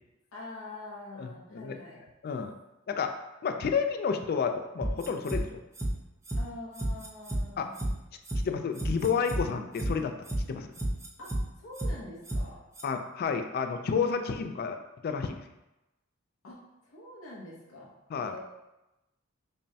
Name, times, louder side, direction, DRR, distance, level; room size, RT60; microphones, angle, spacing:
voice 1, 0.3-2.0 6.4-7.9 11.2-12.6 16.4-18.4, left 2 dB, 85° left, -5 dB, 0.8 m, -45 dB
voice 2, 1.2-1.8 2.2-2.5 2.9-3.1 3.4-5.6 7.6-7.7 8.4-10.1 10.5-10.7 12.8-14.8 15.0-15.4 18.1-18.4, left 6 dB, 50° left, 7 dB, 0.3 m, -30 dB
sound 1, 4.8-5.4 5.8-5.9 6.3-6.4 6.8-7.4 7.8-7.9 8.3-8.4 8.8-9.4 9.8-9.9 10.3-10.4 10.8-11.4 11.8-11.9 12.3-12.4 12.8-12.9, right 1 dB, 15° right, 0.5 m, -31 dB
5.2 x 2.1 x 2.7 m, 0.97 s
head